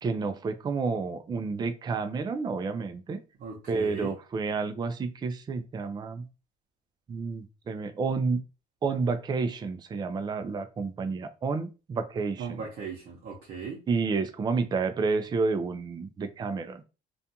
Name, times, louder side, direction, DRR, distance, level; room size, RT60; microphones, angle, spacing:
voice 1, 0.0-3.2 3.7-6.3 7.1-8.4 8.8-12.6 13.9-16.8, right 4 dB, 25° right, 0.3 m, -30 dB
voice 2, 3.4-4.1 12.4-13.8, right 5 dB, 55° right, 0.8 m, -38 dB
2.5 x 2.3 x 2.7 m
cardioid pair, 110°, 17 cm